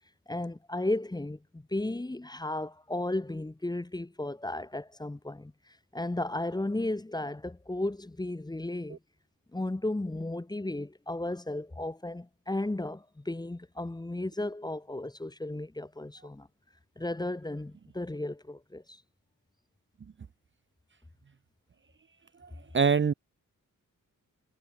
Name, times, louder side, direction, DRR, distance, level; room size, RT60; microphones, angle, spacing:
voice 1, 0.3-5.5 5.9-9.0 9.5-16.5 17.0-19.0, left 2 dB, 10° left, 1.0 m, -34 dB
voice 2, 22.4-23.1, right 6 dB, 35° right, 0.7 m, -25 dB
wide cardioid pair, 130°, 33 cm